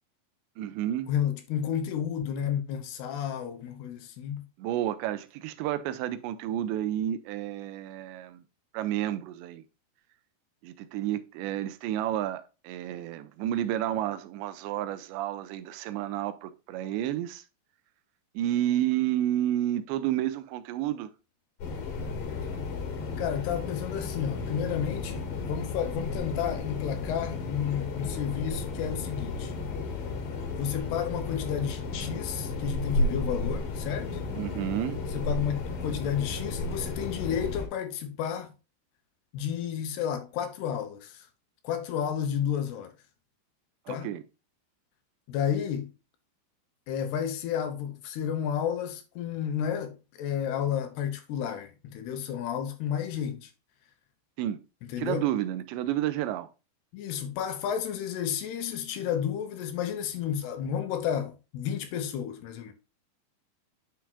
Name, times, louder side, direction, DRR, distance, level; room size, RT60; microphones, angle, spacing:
voice 1, 0.6-1.1 4.6-8.4 8.7-9.6 10.6-17.4 18.4-21.1 34.3-35.0 43.9-44.2 54.4-54.6 55.0-56.5, right 12 dB, 85° right, 2.8 m, -30 dB
voice 2, 1.1-4.4 23.2-29.5 30.6-34.2 35.1-38.5 39.3-41.3 41.6-42.9 43.9-44.1 45.3-45.9 46.9-53.5 54.9-55.2 56.9-62.7, left 9 dB, 75° left, 2.7 m, -31 dB
sound 1, 21.6-37.7, left 3 dB, 55° left, 2.3 m, -33 dB
9.9 x 5.9 x 2.2 m
omnidirectional pair, 5.1 m